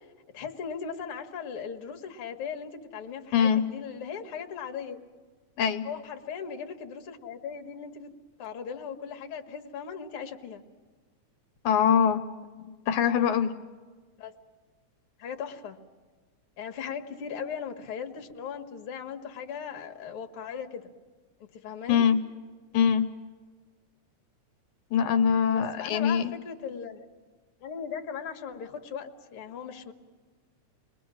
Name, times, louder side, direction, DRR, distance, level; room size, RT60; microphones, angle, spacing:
voice 1, 0.3-5.0 5.8-8.1 8.4-10.6 14.2-14.3 15.2-15.8 16.6-20.9 21.5-22.0 25.5-27.1 27.6-29.9, left 7 dB, 55° left, 2 dB, 2.1 m, -38 dB
voice 2, 11.6-12.2 12.6-13.5 21.9-22.2 22.7-23.1 24.9-26.3, left 7 dB, 85° left, 9 dB, 2.3 m, -23 dB
29.0 x 21.0 x 6.3 m, 1.4 s
omnidirectional pair, 3.4 m